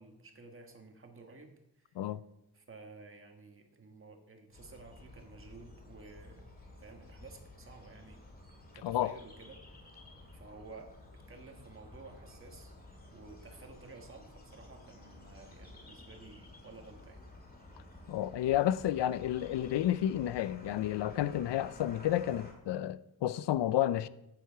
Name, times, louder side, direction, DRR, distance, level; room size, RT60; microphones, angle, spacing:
voice 1, 0.0-2.0 2.5-6.4 6.8-8.2 8.7-10.0 10.3-12.7 13.1-17.2, right 3 dB, 30° right, 1.6 m, -53 dB
sound 1, 4.5-22.5, left 2 dB, 20° left, 2.1 m, -53 dB
voice 2, 8.8-9.2 18.1-24.1, left 12 dB, 80° left, 0.6 m, -31 dB
14.5 x 9.7 x 4.7 m
wide cardioid pair, 175°, 41 cm